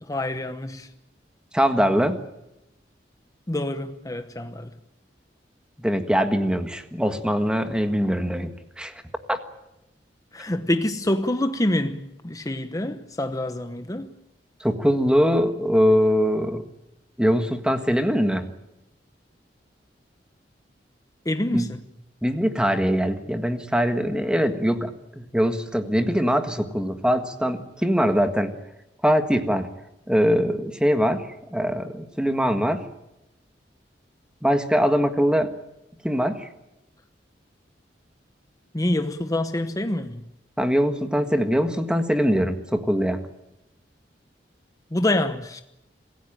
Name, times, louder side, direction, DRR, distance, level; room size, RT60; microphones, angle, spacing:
voice 1, 0.0-0.9 3.5-4.7 10.3-14.1 21.3-21.8 38.7-40.2 44.9-45.6, left 1 dB, 20° left, 0.9 m, -26 dB
voice 2, 1.5-2.2 5.8-8.5 8.8-8.9 9.3-9.4 14.6-16.6 17.2-18.5 21.5-21.7 22.2-24.9 25.3-28.5 29.0-29.7 30.1-32.8 34.4-35.5 36.0-36.5 40.6-43.2, equal, 5° right, 1.7 m, -22 dB
26.5 x 16.0 x 9.0 m
head